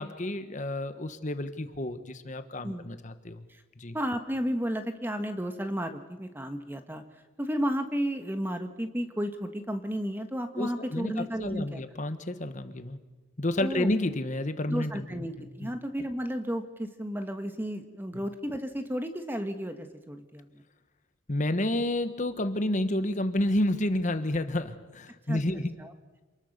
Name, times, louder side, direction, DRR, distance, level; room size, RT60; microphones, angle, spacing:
voice 1, 0.0-3.4 3.8-4.0 10.6-13.0 13.4-15.7 18.1-18.2 21.3-25.7, left 1 dB, 40° left, 10 dB, 1.2 m, -30 dB
voice 2, 2.6-3.0 3.9-7.0 7.4-11.8 13.6-13.9 14.7-20.6 25.3-25.4 25.8-25.9, equal, 10° right, 7 dB, 1.3 m, -33 dB
27.5 x 20.0 x 6.7 m, 1.2 s
head